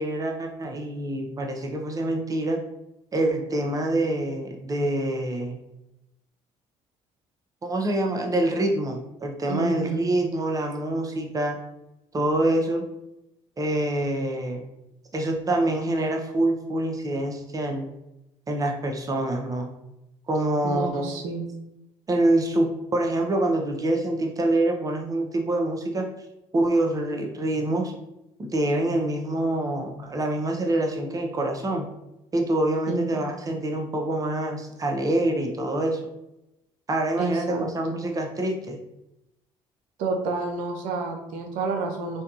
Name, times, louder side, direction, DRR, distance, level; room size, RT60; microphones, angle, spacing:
voice 1, 0.0-2.6 3.1-5.6 7.6-11.6 12.1-12.8 13.6-14.6 15.1-17.9 18.5-19.7 20.3-21.2 22.1-26.0 26.5-27.9 28.4-31.9 32.3-36.0 36.9-38.8, right 1 dB, 25° right, 2 dB, 0.6 m, -25 dB
voice 2, 9.5-10.0 20.6-21.5 32.9-33.2 37.2-37.7 40.0-42.2, right 3 dB, 75° right, 3 dB, 0.5 m, -29 dB
2.6 x 2.2 x 2.4 m, 0.90 s
supercardioid pair, 70°, 13 cm